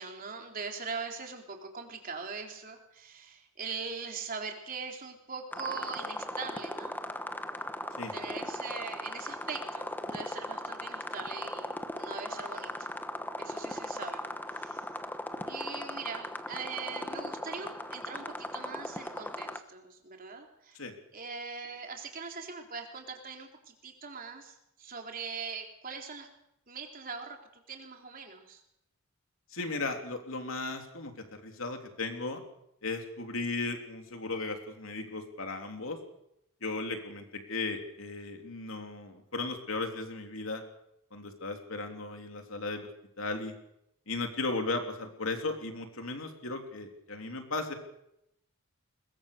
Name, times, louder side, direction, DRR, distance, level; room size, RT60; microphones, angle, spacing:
voice 1, 0.0-6.9 8.1-12.9 13.4-14.3 14.5-14.9 15.5-20.8 21.1-26.3 26.7-28.6, right 5 dB, 40° right, 2 dB, 3.7 m, -41 dB
sound 1, 5.5-19.6, left 1 dB, 10° left, 1.2 m, -38 dB
voice 2, 29.5-32.4 32.8-36.0 36.6-40.6 41.1-42.9 43.2-43.6 44.1-47.7, left 3 dB, 70° left, 4 dB, 3.4 m, -36 dB
21.5 x 21.0 x 6.8 m, 0.80 s
head